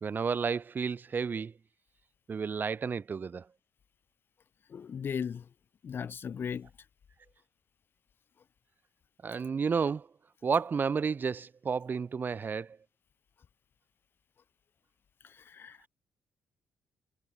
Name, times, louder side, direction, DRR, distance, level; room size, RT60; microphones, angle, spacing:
voice 1, 0.0-1.5 2.3-3.5 9.2-10.1 10.4-12.8, right 5 dB, 35° right, 0.9 m, -31 dB
voice 2, 4.7-5.4 5.8-6.7 15.5-15.8, left 7 dB, 40° left, 0.7 m, -36 dB
figure-of-eight pair, 40°, 5 cm